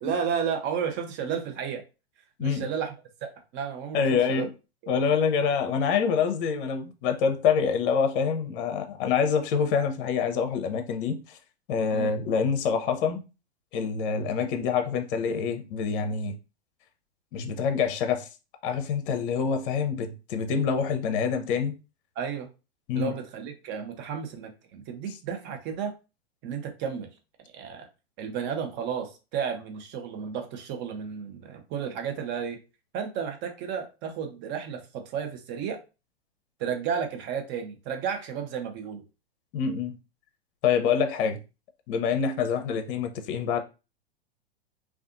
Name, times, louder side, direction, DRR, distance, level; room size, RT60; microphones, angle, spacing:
voice 1, 0.0-1.8 2.4-2.9 3.2-4.5 4.8-4.9 11.9-12.2 22.2-22.5 22.9-25.9 26.4-27.1 27.5-27.9 28.2-32.6 32.9-35.8 36.6-39.0, right 7 dB, 35° right, 0.6 m, -32 dB
voice 2, 3.9-4.5 4.9-11.4 11.7-13.2 13.7-16.3 17.3-18.3 18.6-21.7 22.9-23.2 39.5-39.9 40.6-41.4 41.9-43.6, left 6 dB, 55° left, 0.6 m, -26 dB
2.5 x 2.3 x 2.4 m
hypercardioid pair, 105°, 33 cm